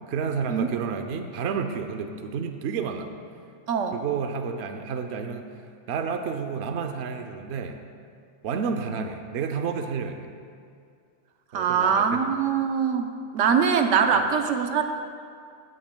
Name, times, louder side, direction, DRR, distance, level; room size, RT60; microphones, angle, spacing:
voice 1, 0.1-3.1 3.9-5.4 5.9-7.8 8.4-10.3 11.5-12.2 14.1-14.2, right 6 dB, 65° right, 6 dB, 0.9 m, -30 dB
voice 2, 3.7-4.0 11.5-14.8, right 6 dB, 80° right, 5 dB, 1.0 m, -23 dB
17.0 x 9.4 x 2.2 m, 2.3 s
omnidirectional pair, 1.3 m